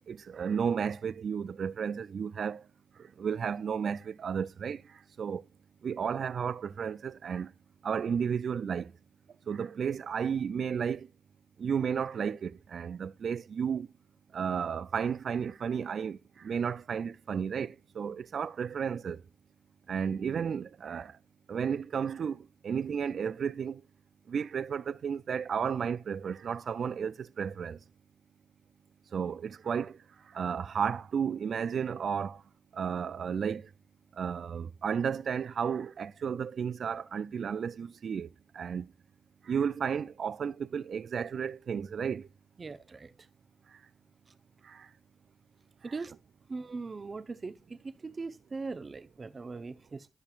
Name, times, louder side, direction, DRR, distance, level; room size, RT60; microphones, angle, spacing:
voice 1, 0.1-2.6 3.0-4.8 5.2-5.4 5.8-7.5 7.8-8.9 9.5-11.1 11.6-13.9 14.3-19.2 19.9-21.2 21.5-23.8 24.3-27.8 29.1-30.0 30.3-32.4 32.7-33.7 34.2-38.9 39.4-42.3 44.6-44.9, right 7 dB, 65° right, 0.3 m, -33 dB
voice 2, 42.6-43.1 45.8-46.1 46.5-50.1, right 4 dB, 40° right, 0.8 m, -40 dB
14.5 x 5.4 x 2.4 m
supercardioid pair, 45°, 0 cm